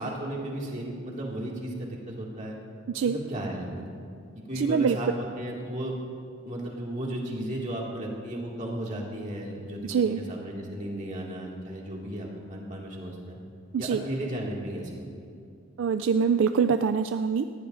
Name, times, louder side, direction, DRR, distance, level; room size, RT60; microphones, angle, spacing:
voice 1, 0.0-2.6 3.0-4.0 4.3-5.9 6.4-13.4 13.8-15.1, right 1 dB, 35° right, -2 dB, 2.1 m, -34 dB
voice 2, 2.9-3.2 4.5-5.0 9.8-10.2 13.7-14.0 15.8-17.4, right 6 dB, 65° right, 9 dB, 0.3 m, -24 dB
19.5 x 15.0 x 2.6 m, 2.3 s
head